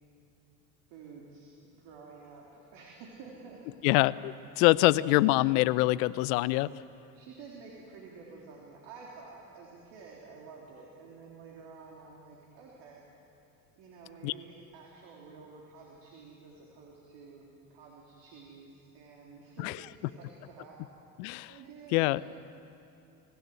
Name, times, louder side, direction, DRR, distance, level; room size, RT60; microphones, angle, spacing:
voice 1, 0.9-3.6 4.7-4.9 7.1-13.0 13.7-17.5 17.7-20.8 21.5-22.4, right 4 dB, 60° right, -2 dB, 3.7 m, -50 dB
voice 2, 3.8-6.7 14.2-14.3 19.6-19.7 21.2-21.5 21.9-22.2, left 19 dB, 65° left, 19 dB, 0.7 m, -25 dB
24.5 x 16.0 x 9.3 m, 2.7 s
hypercardioid pair, 70°, 47 cm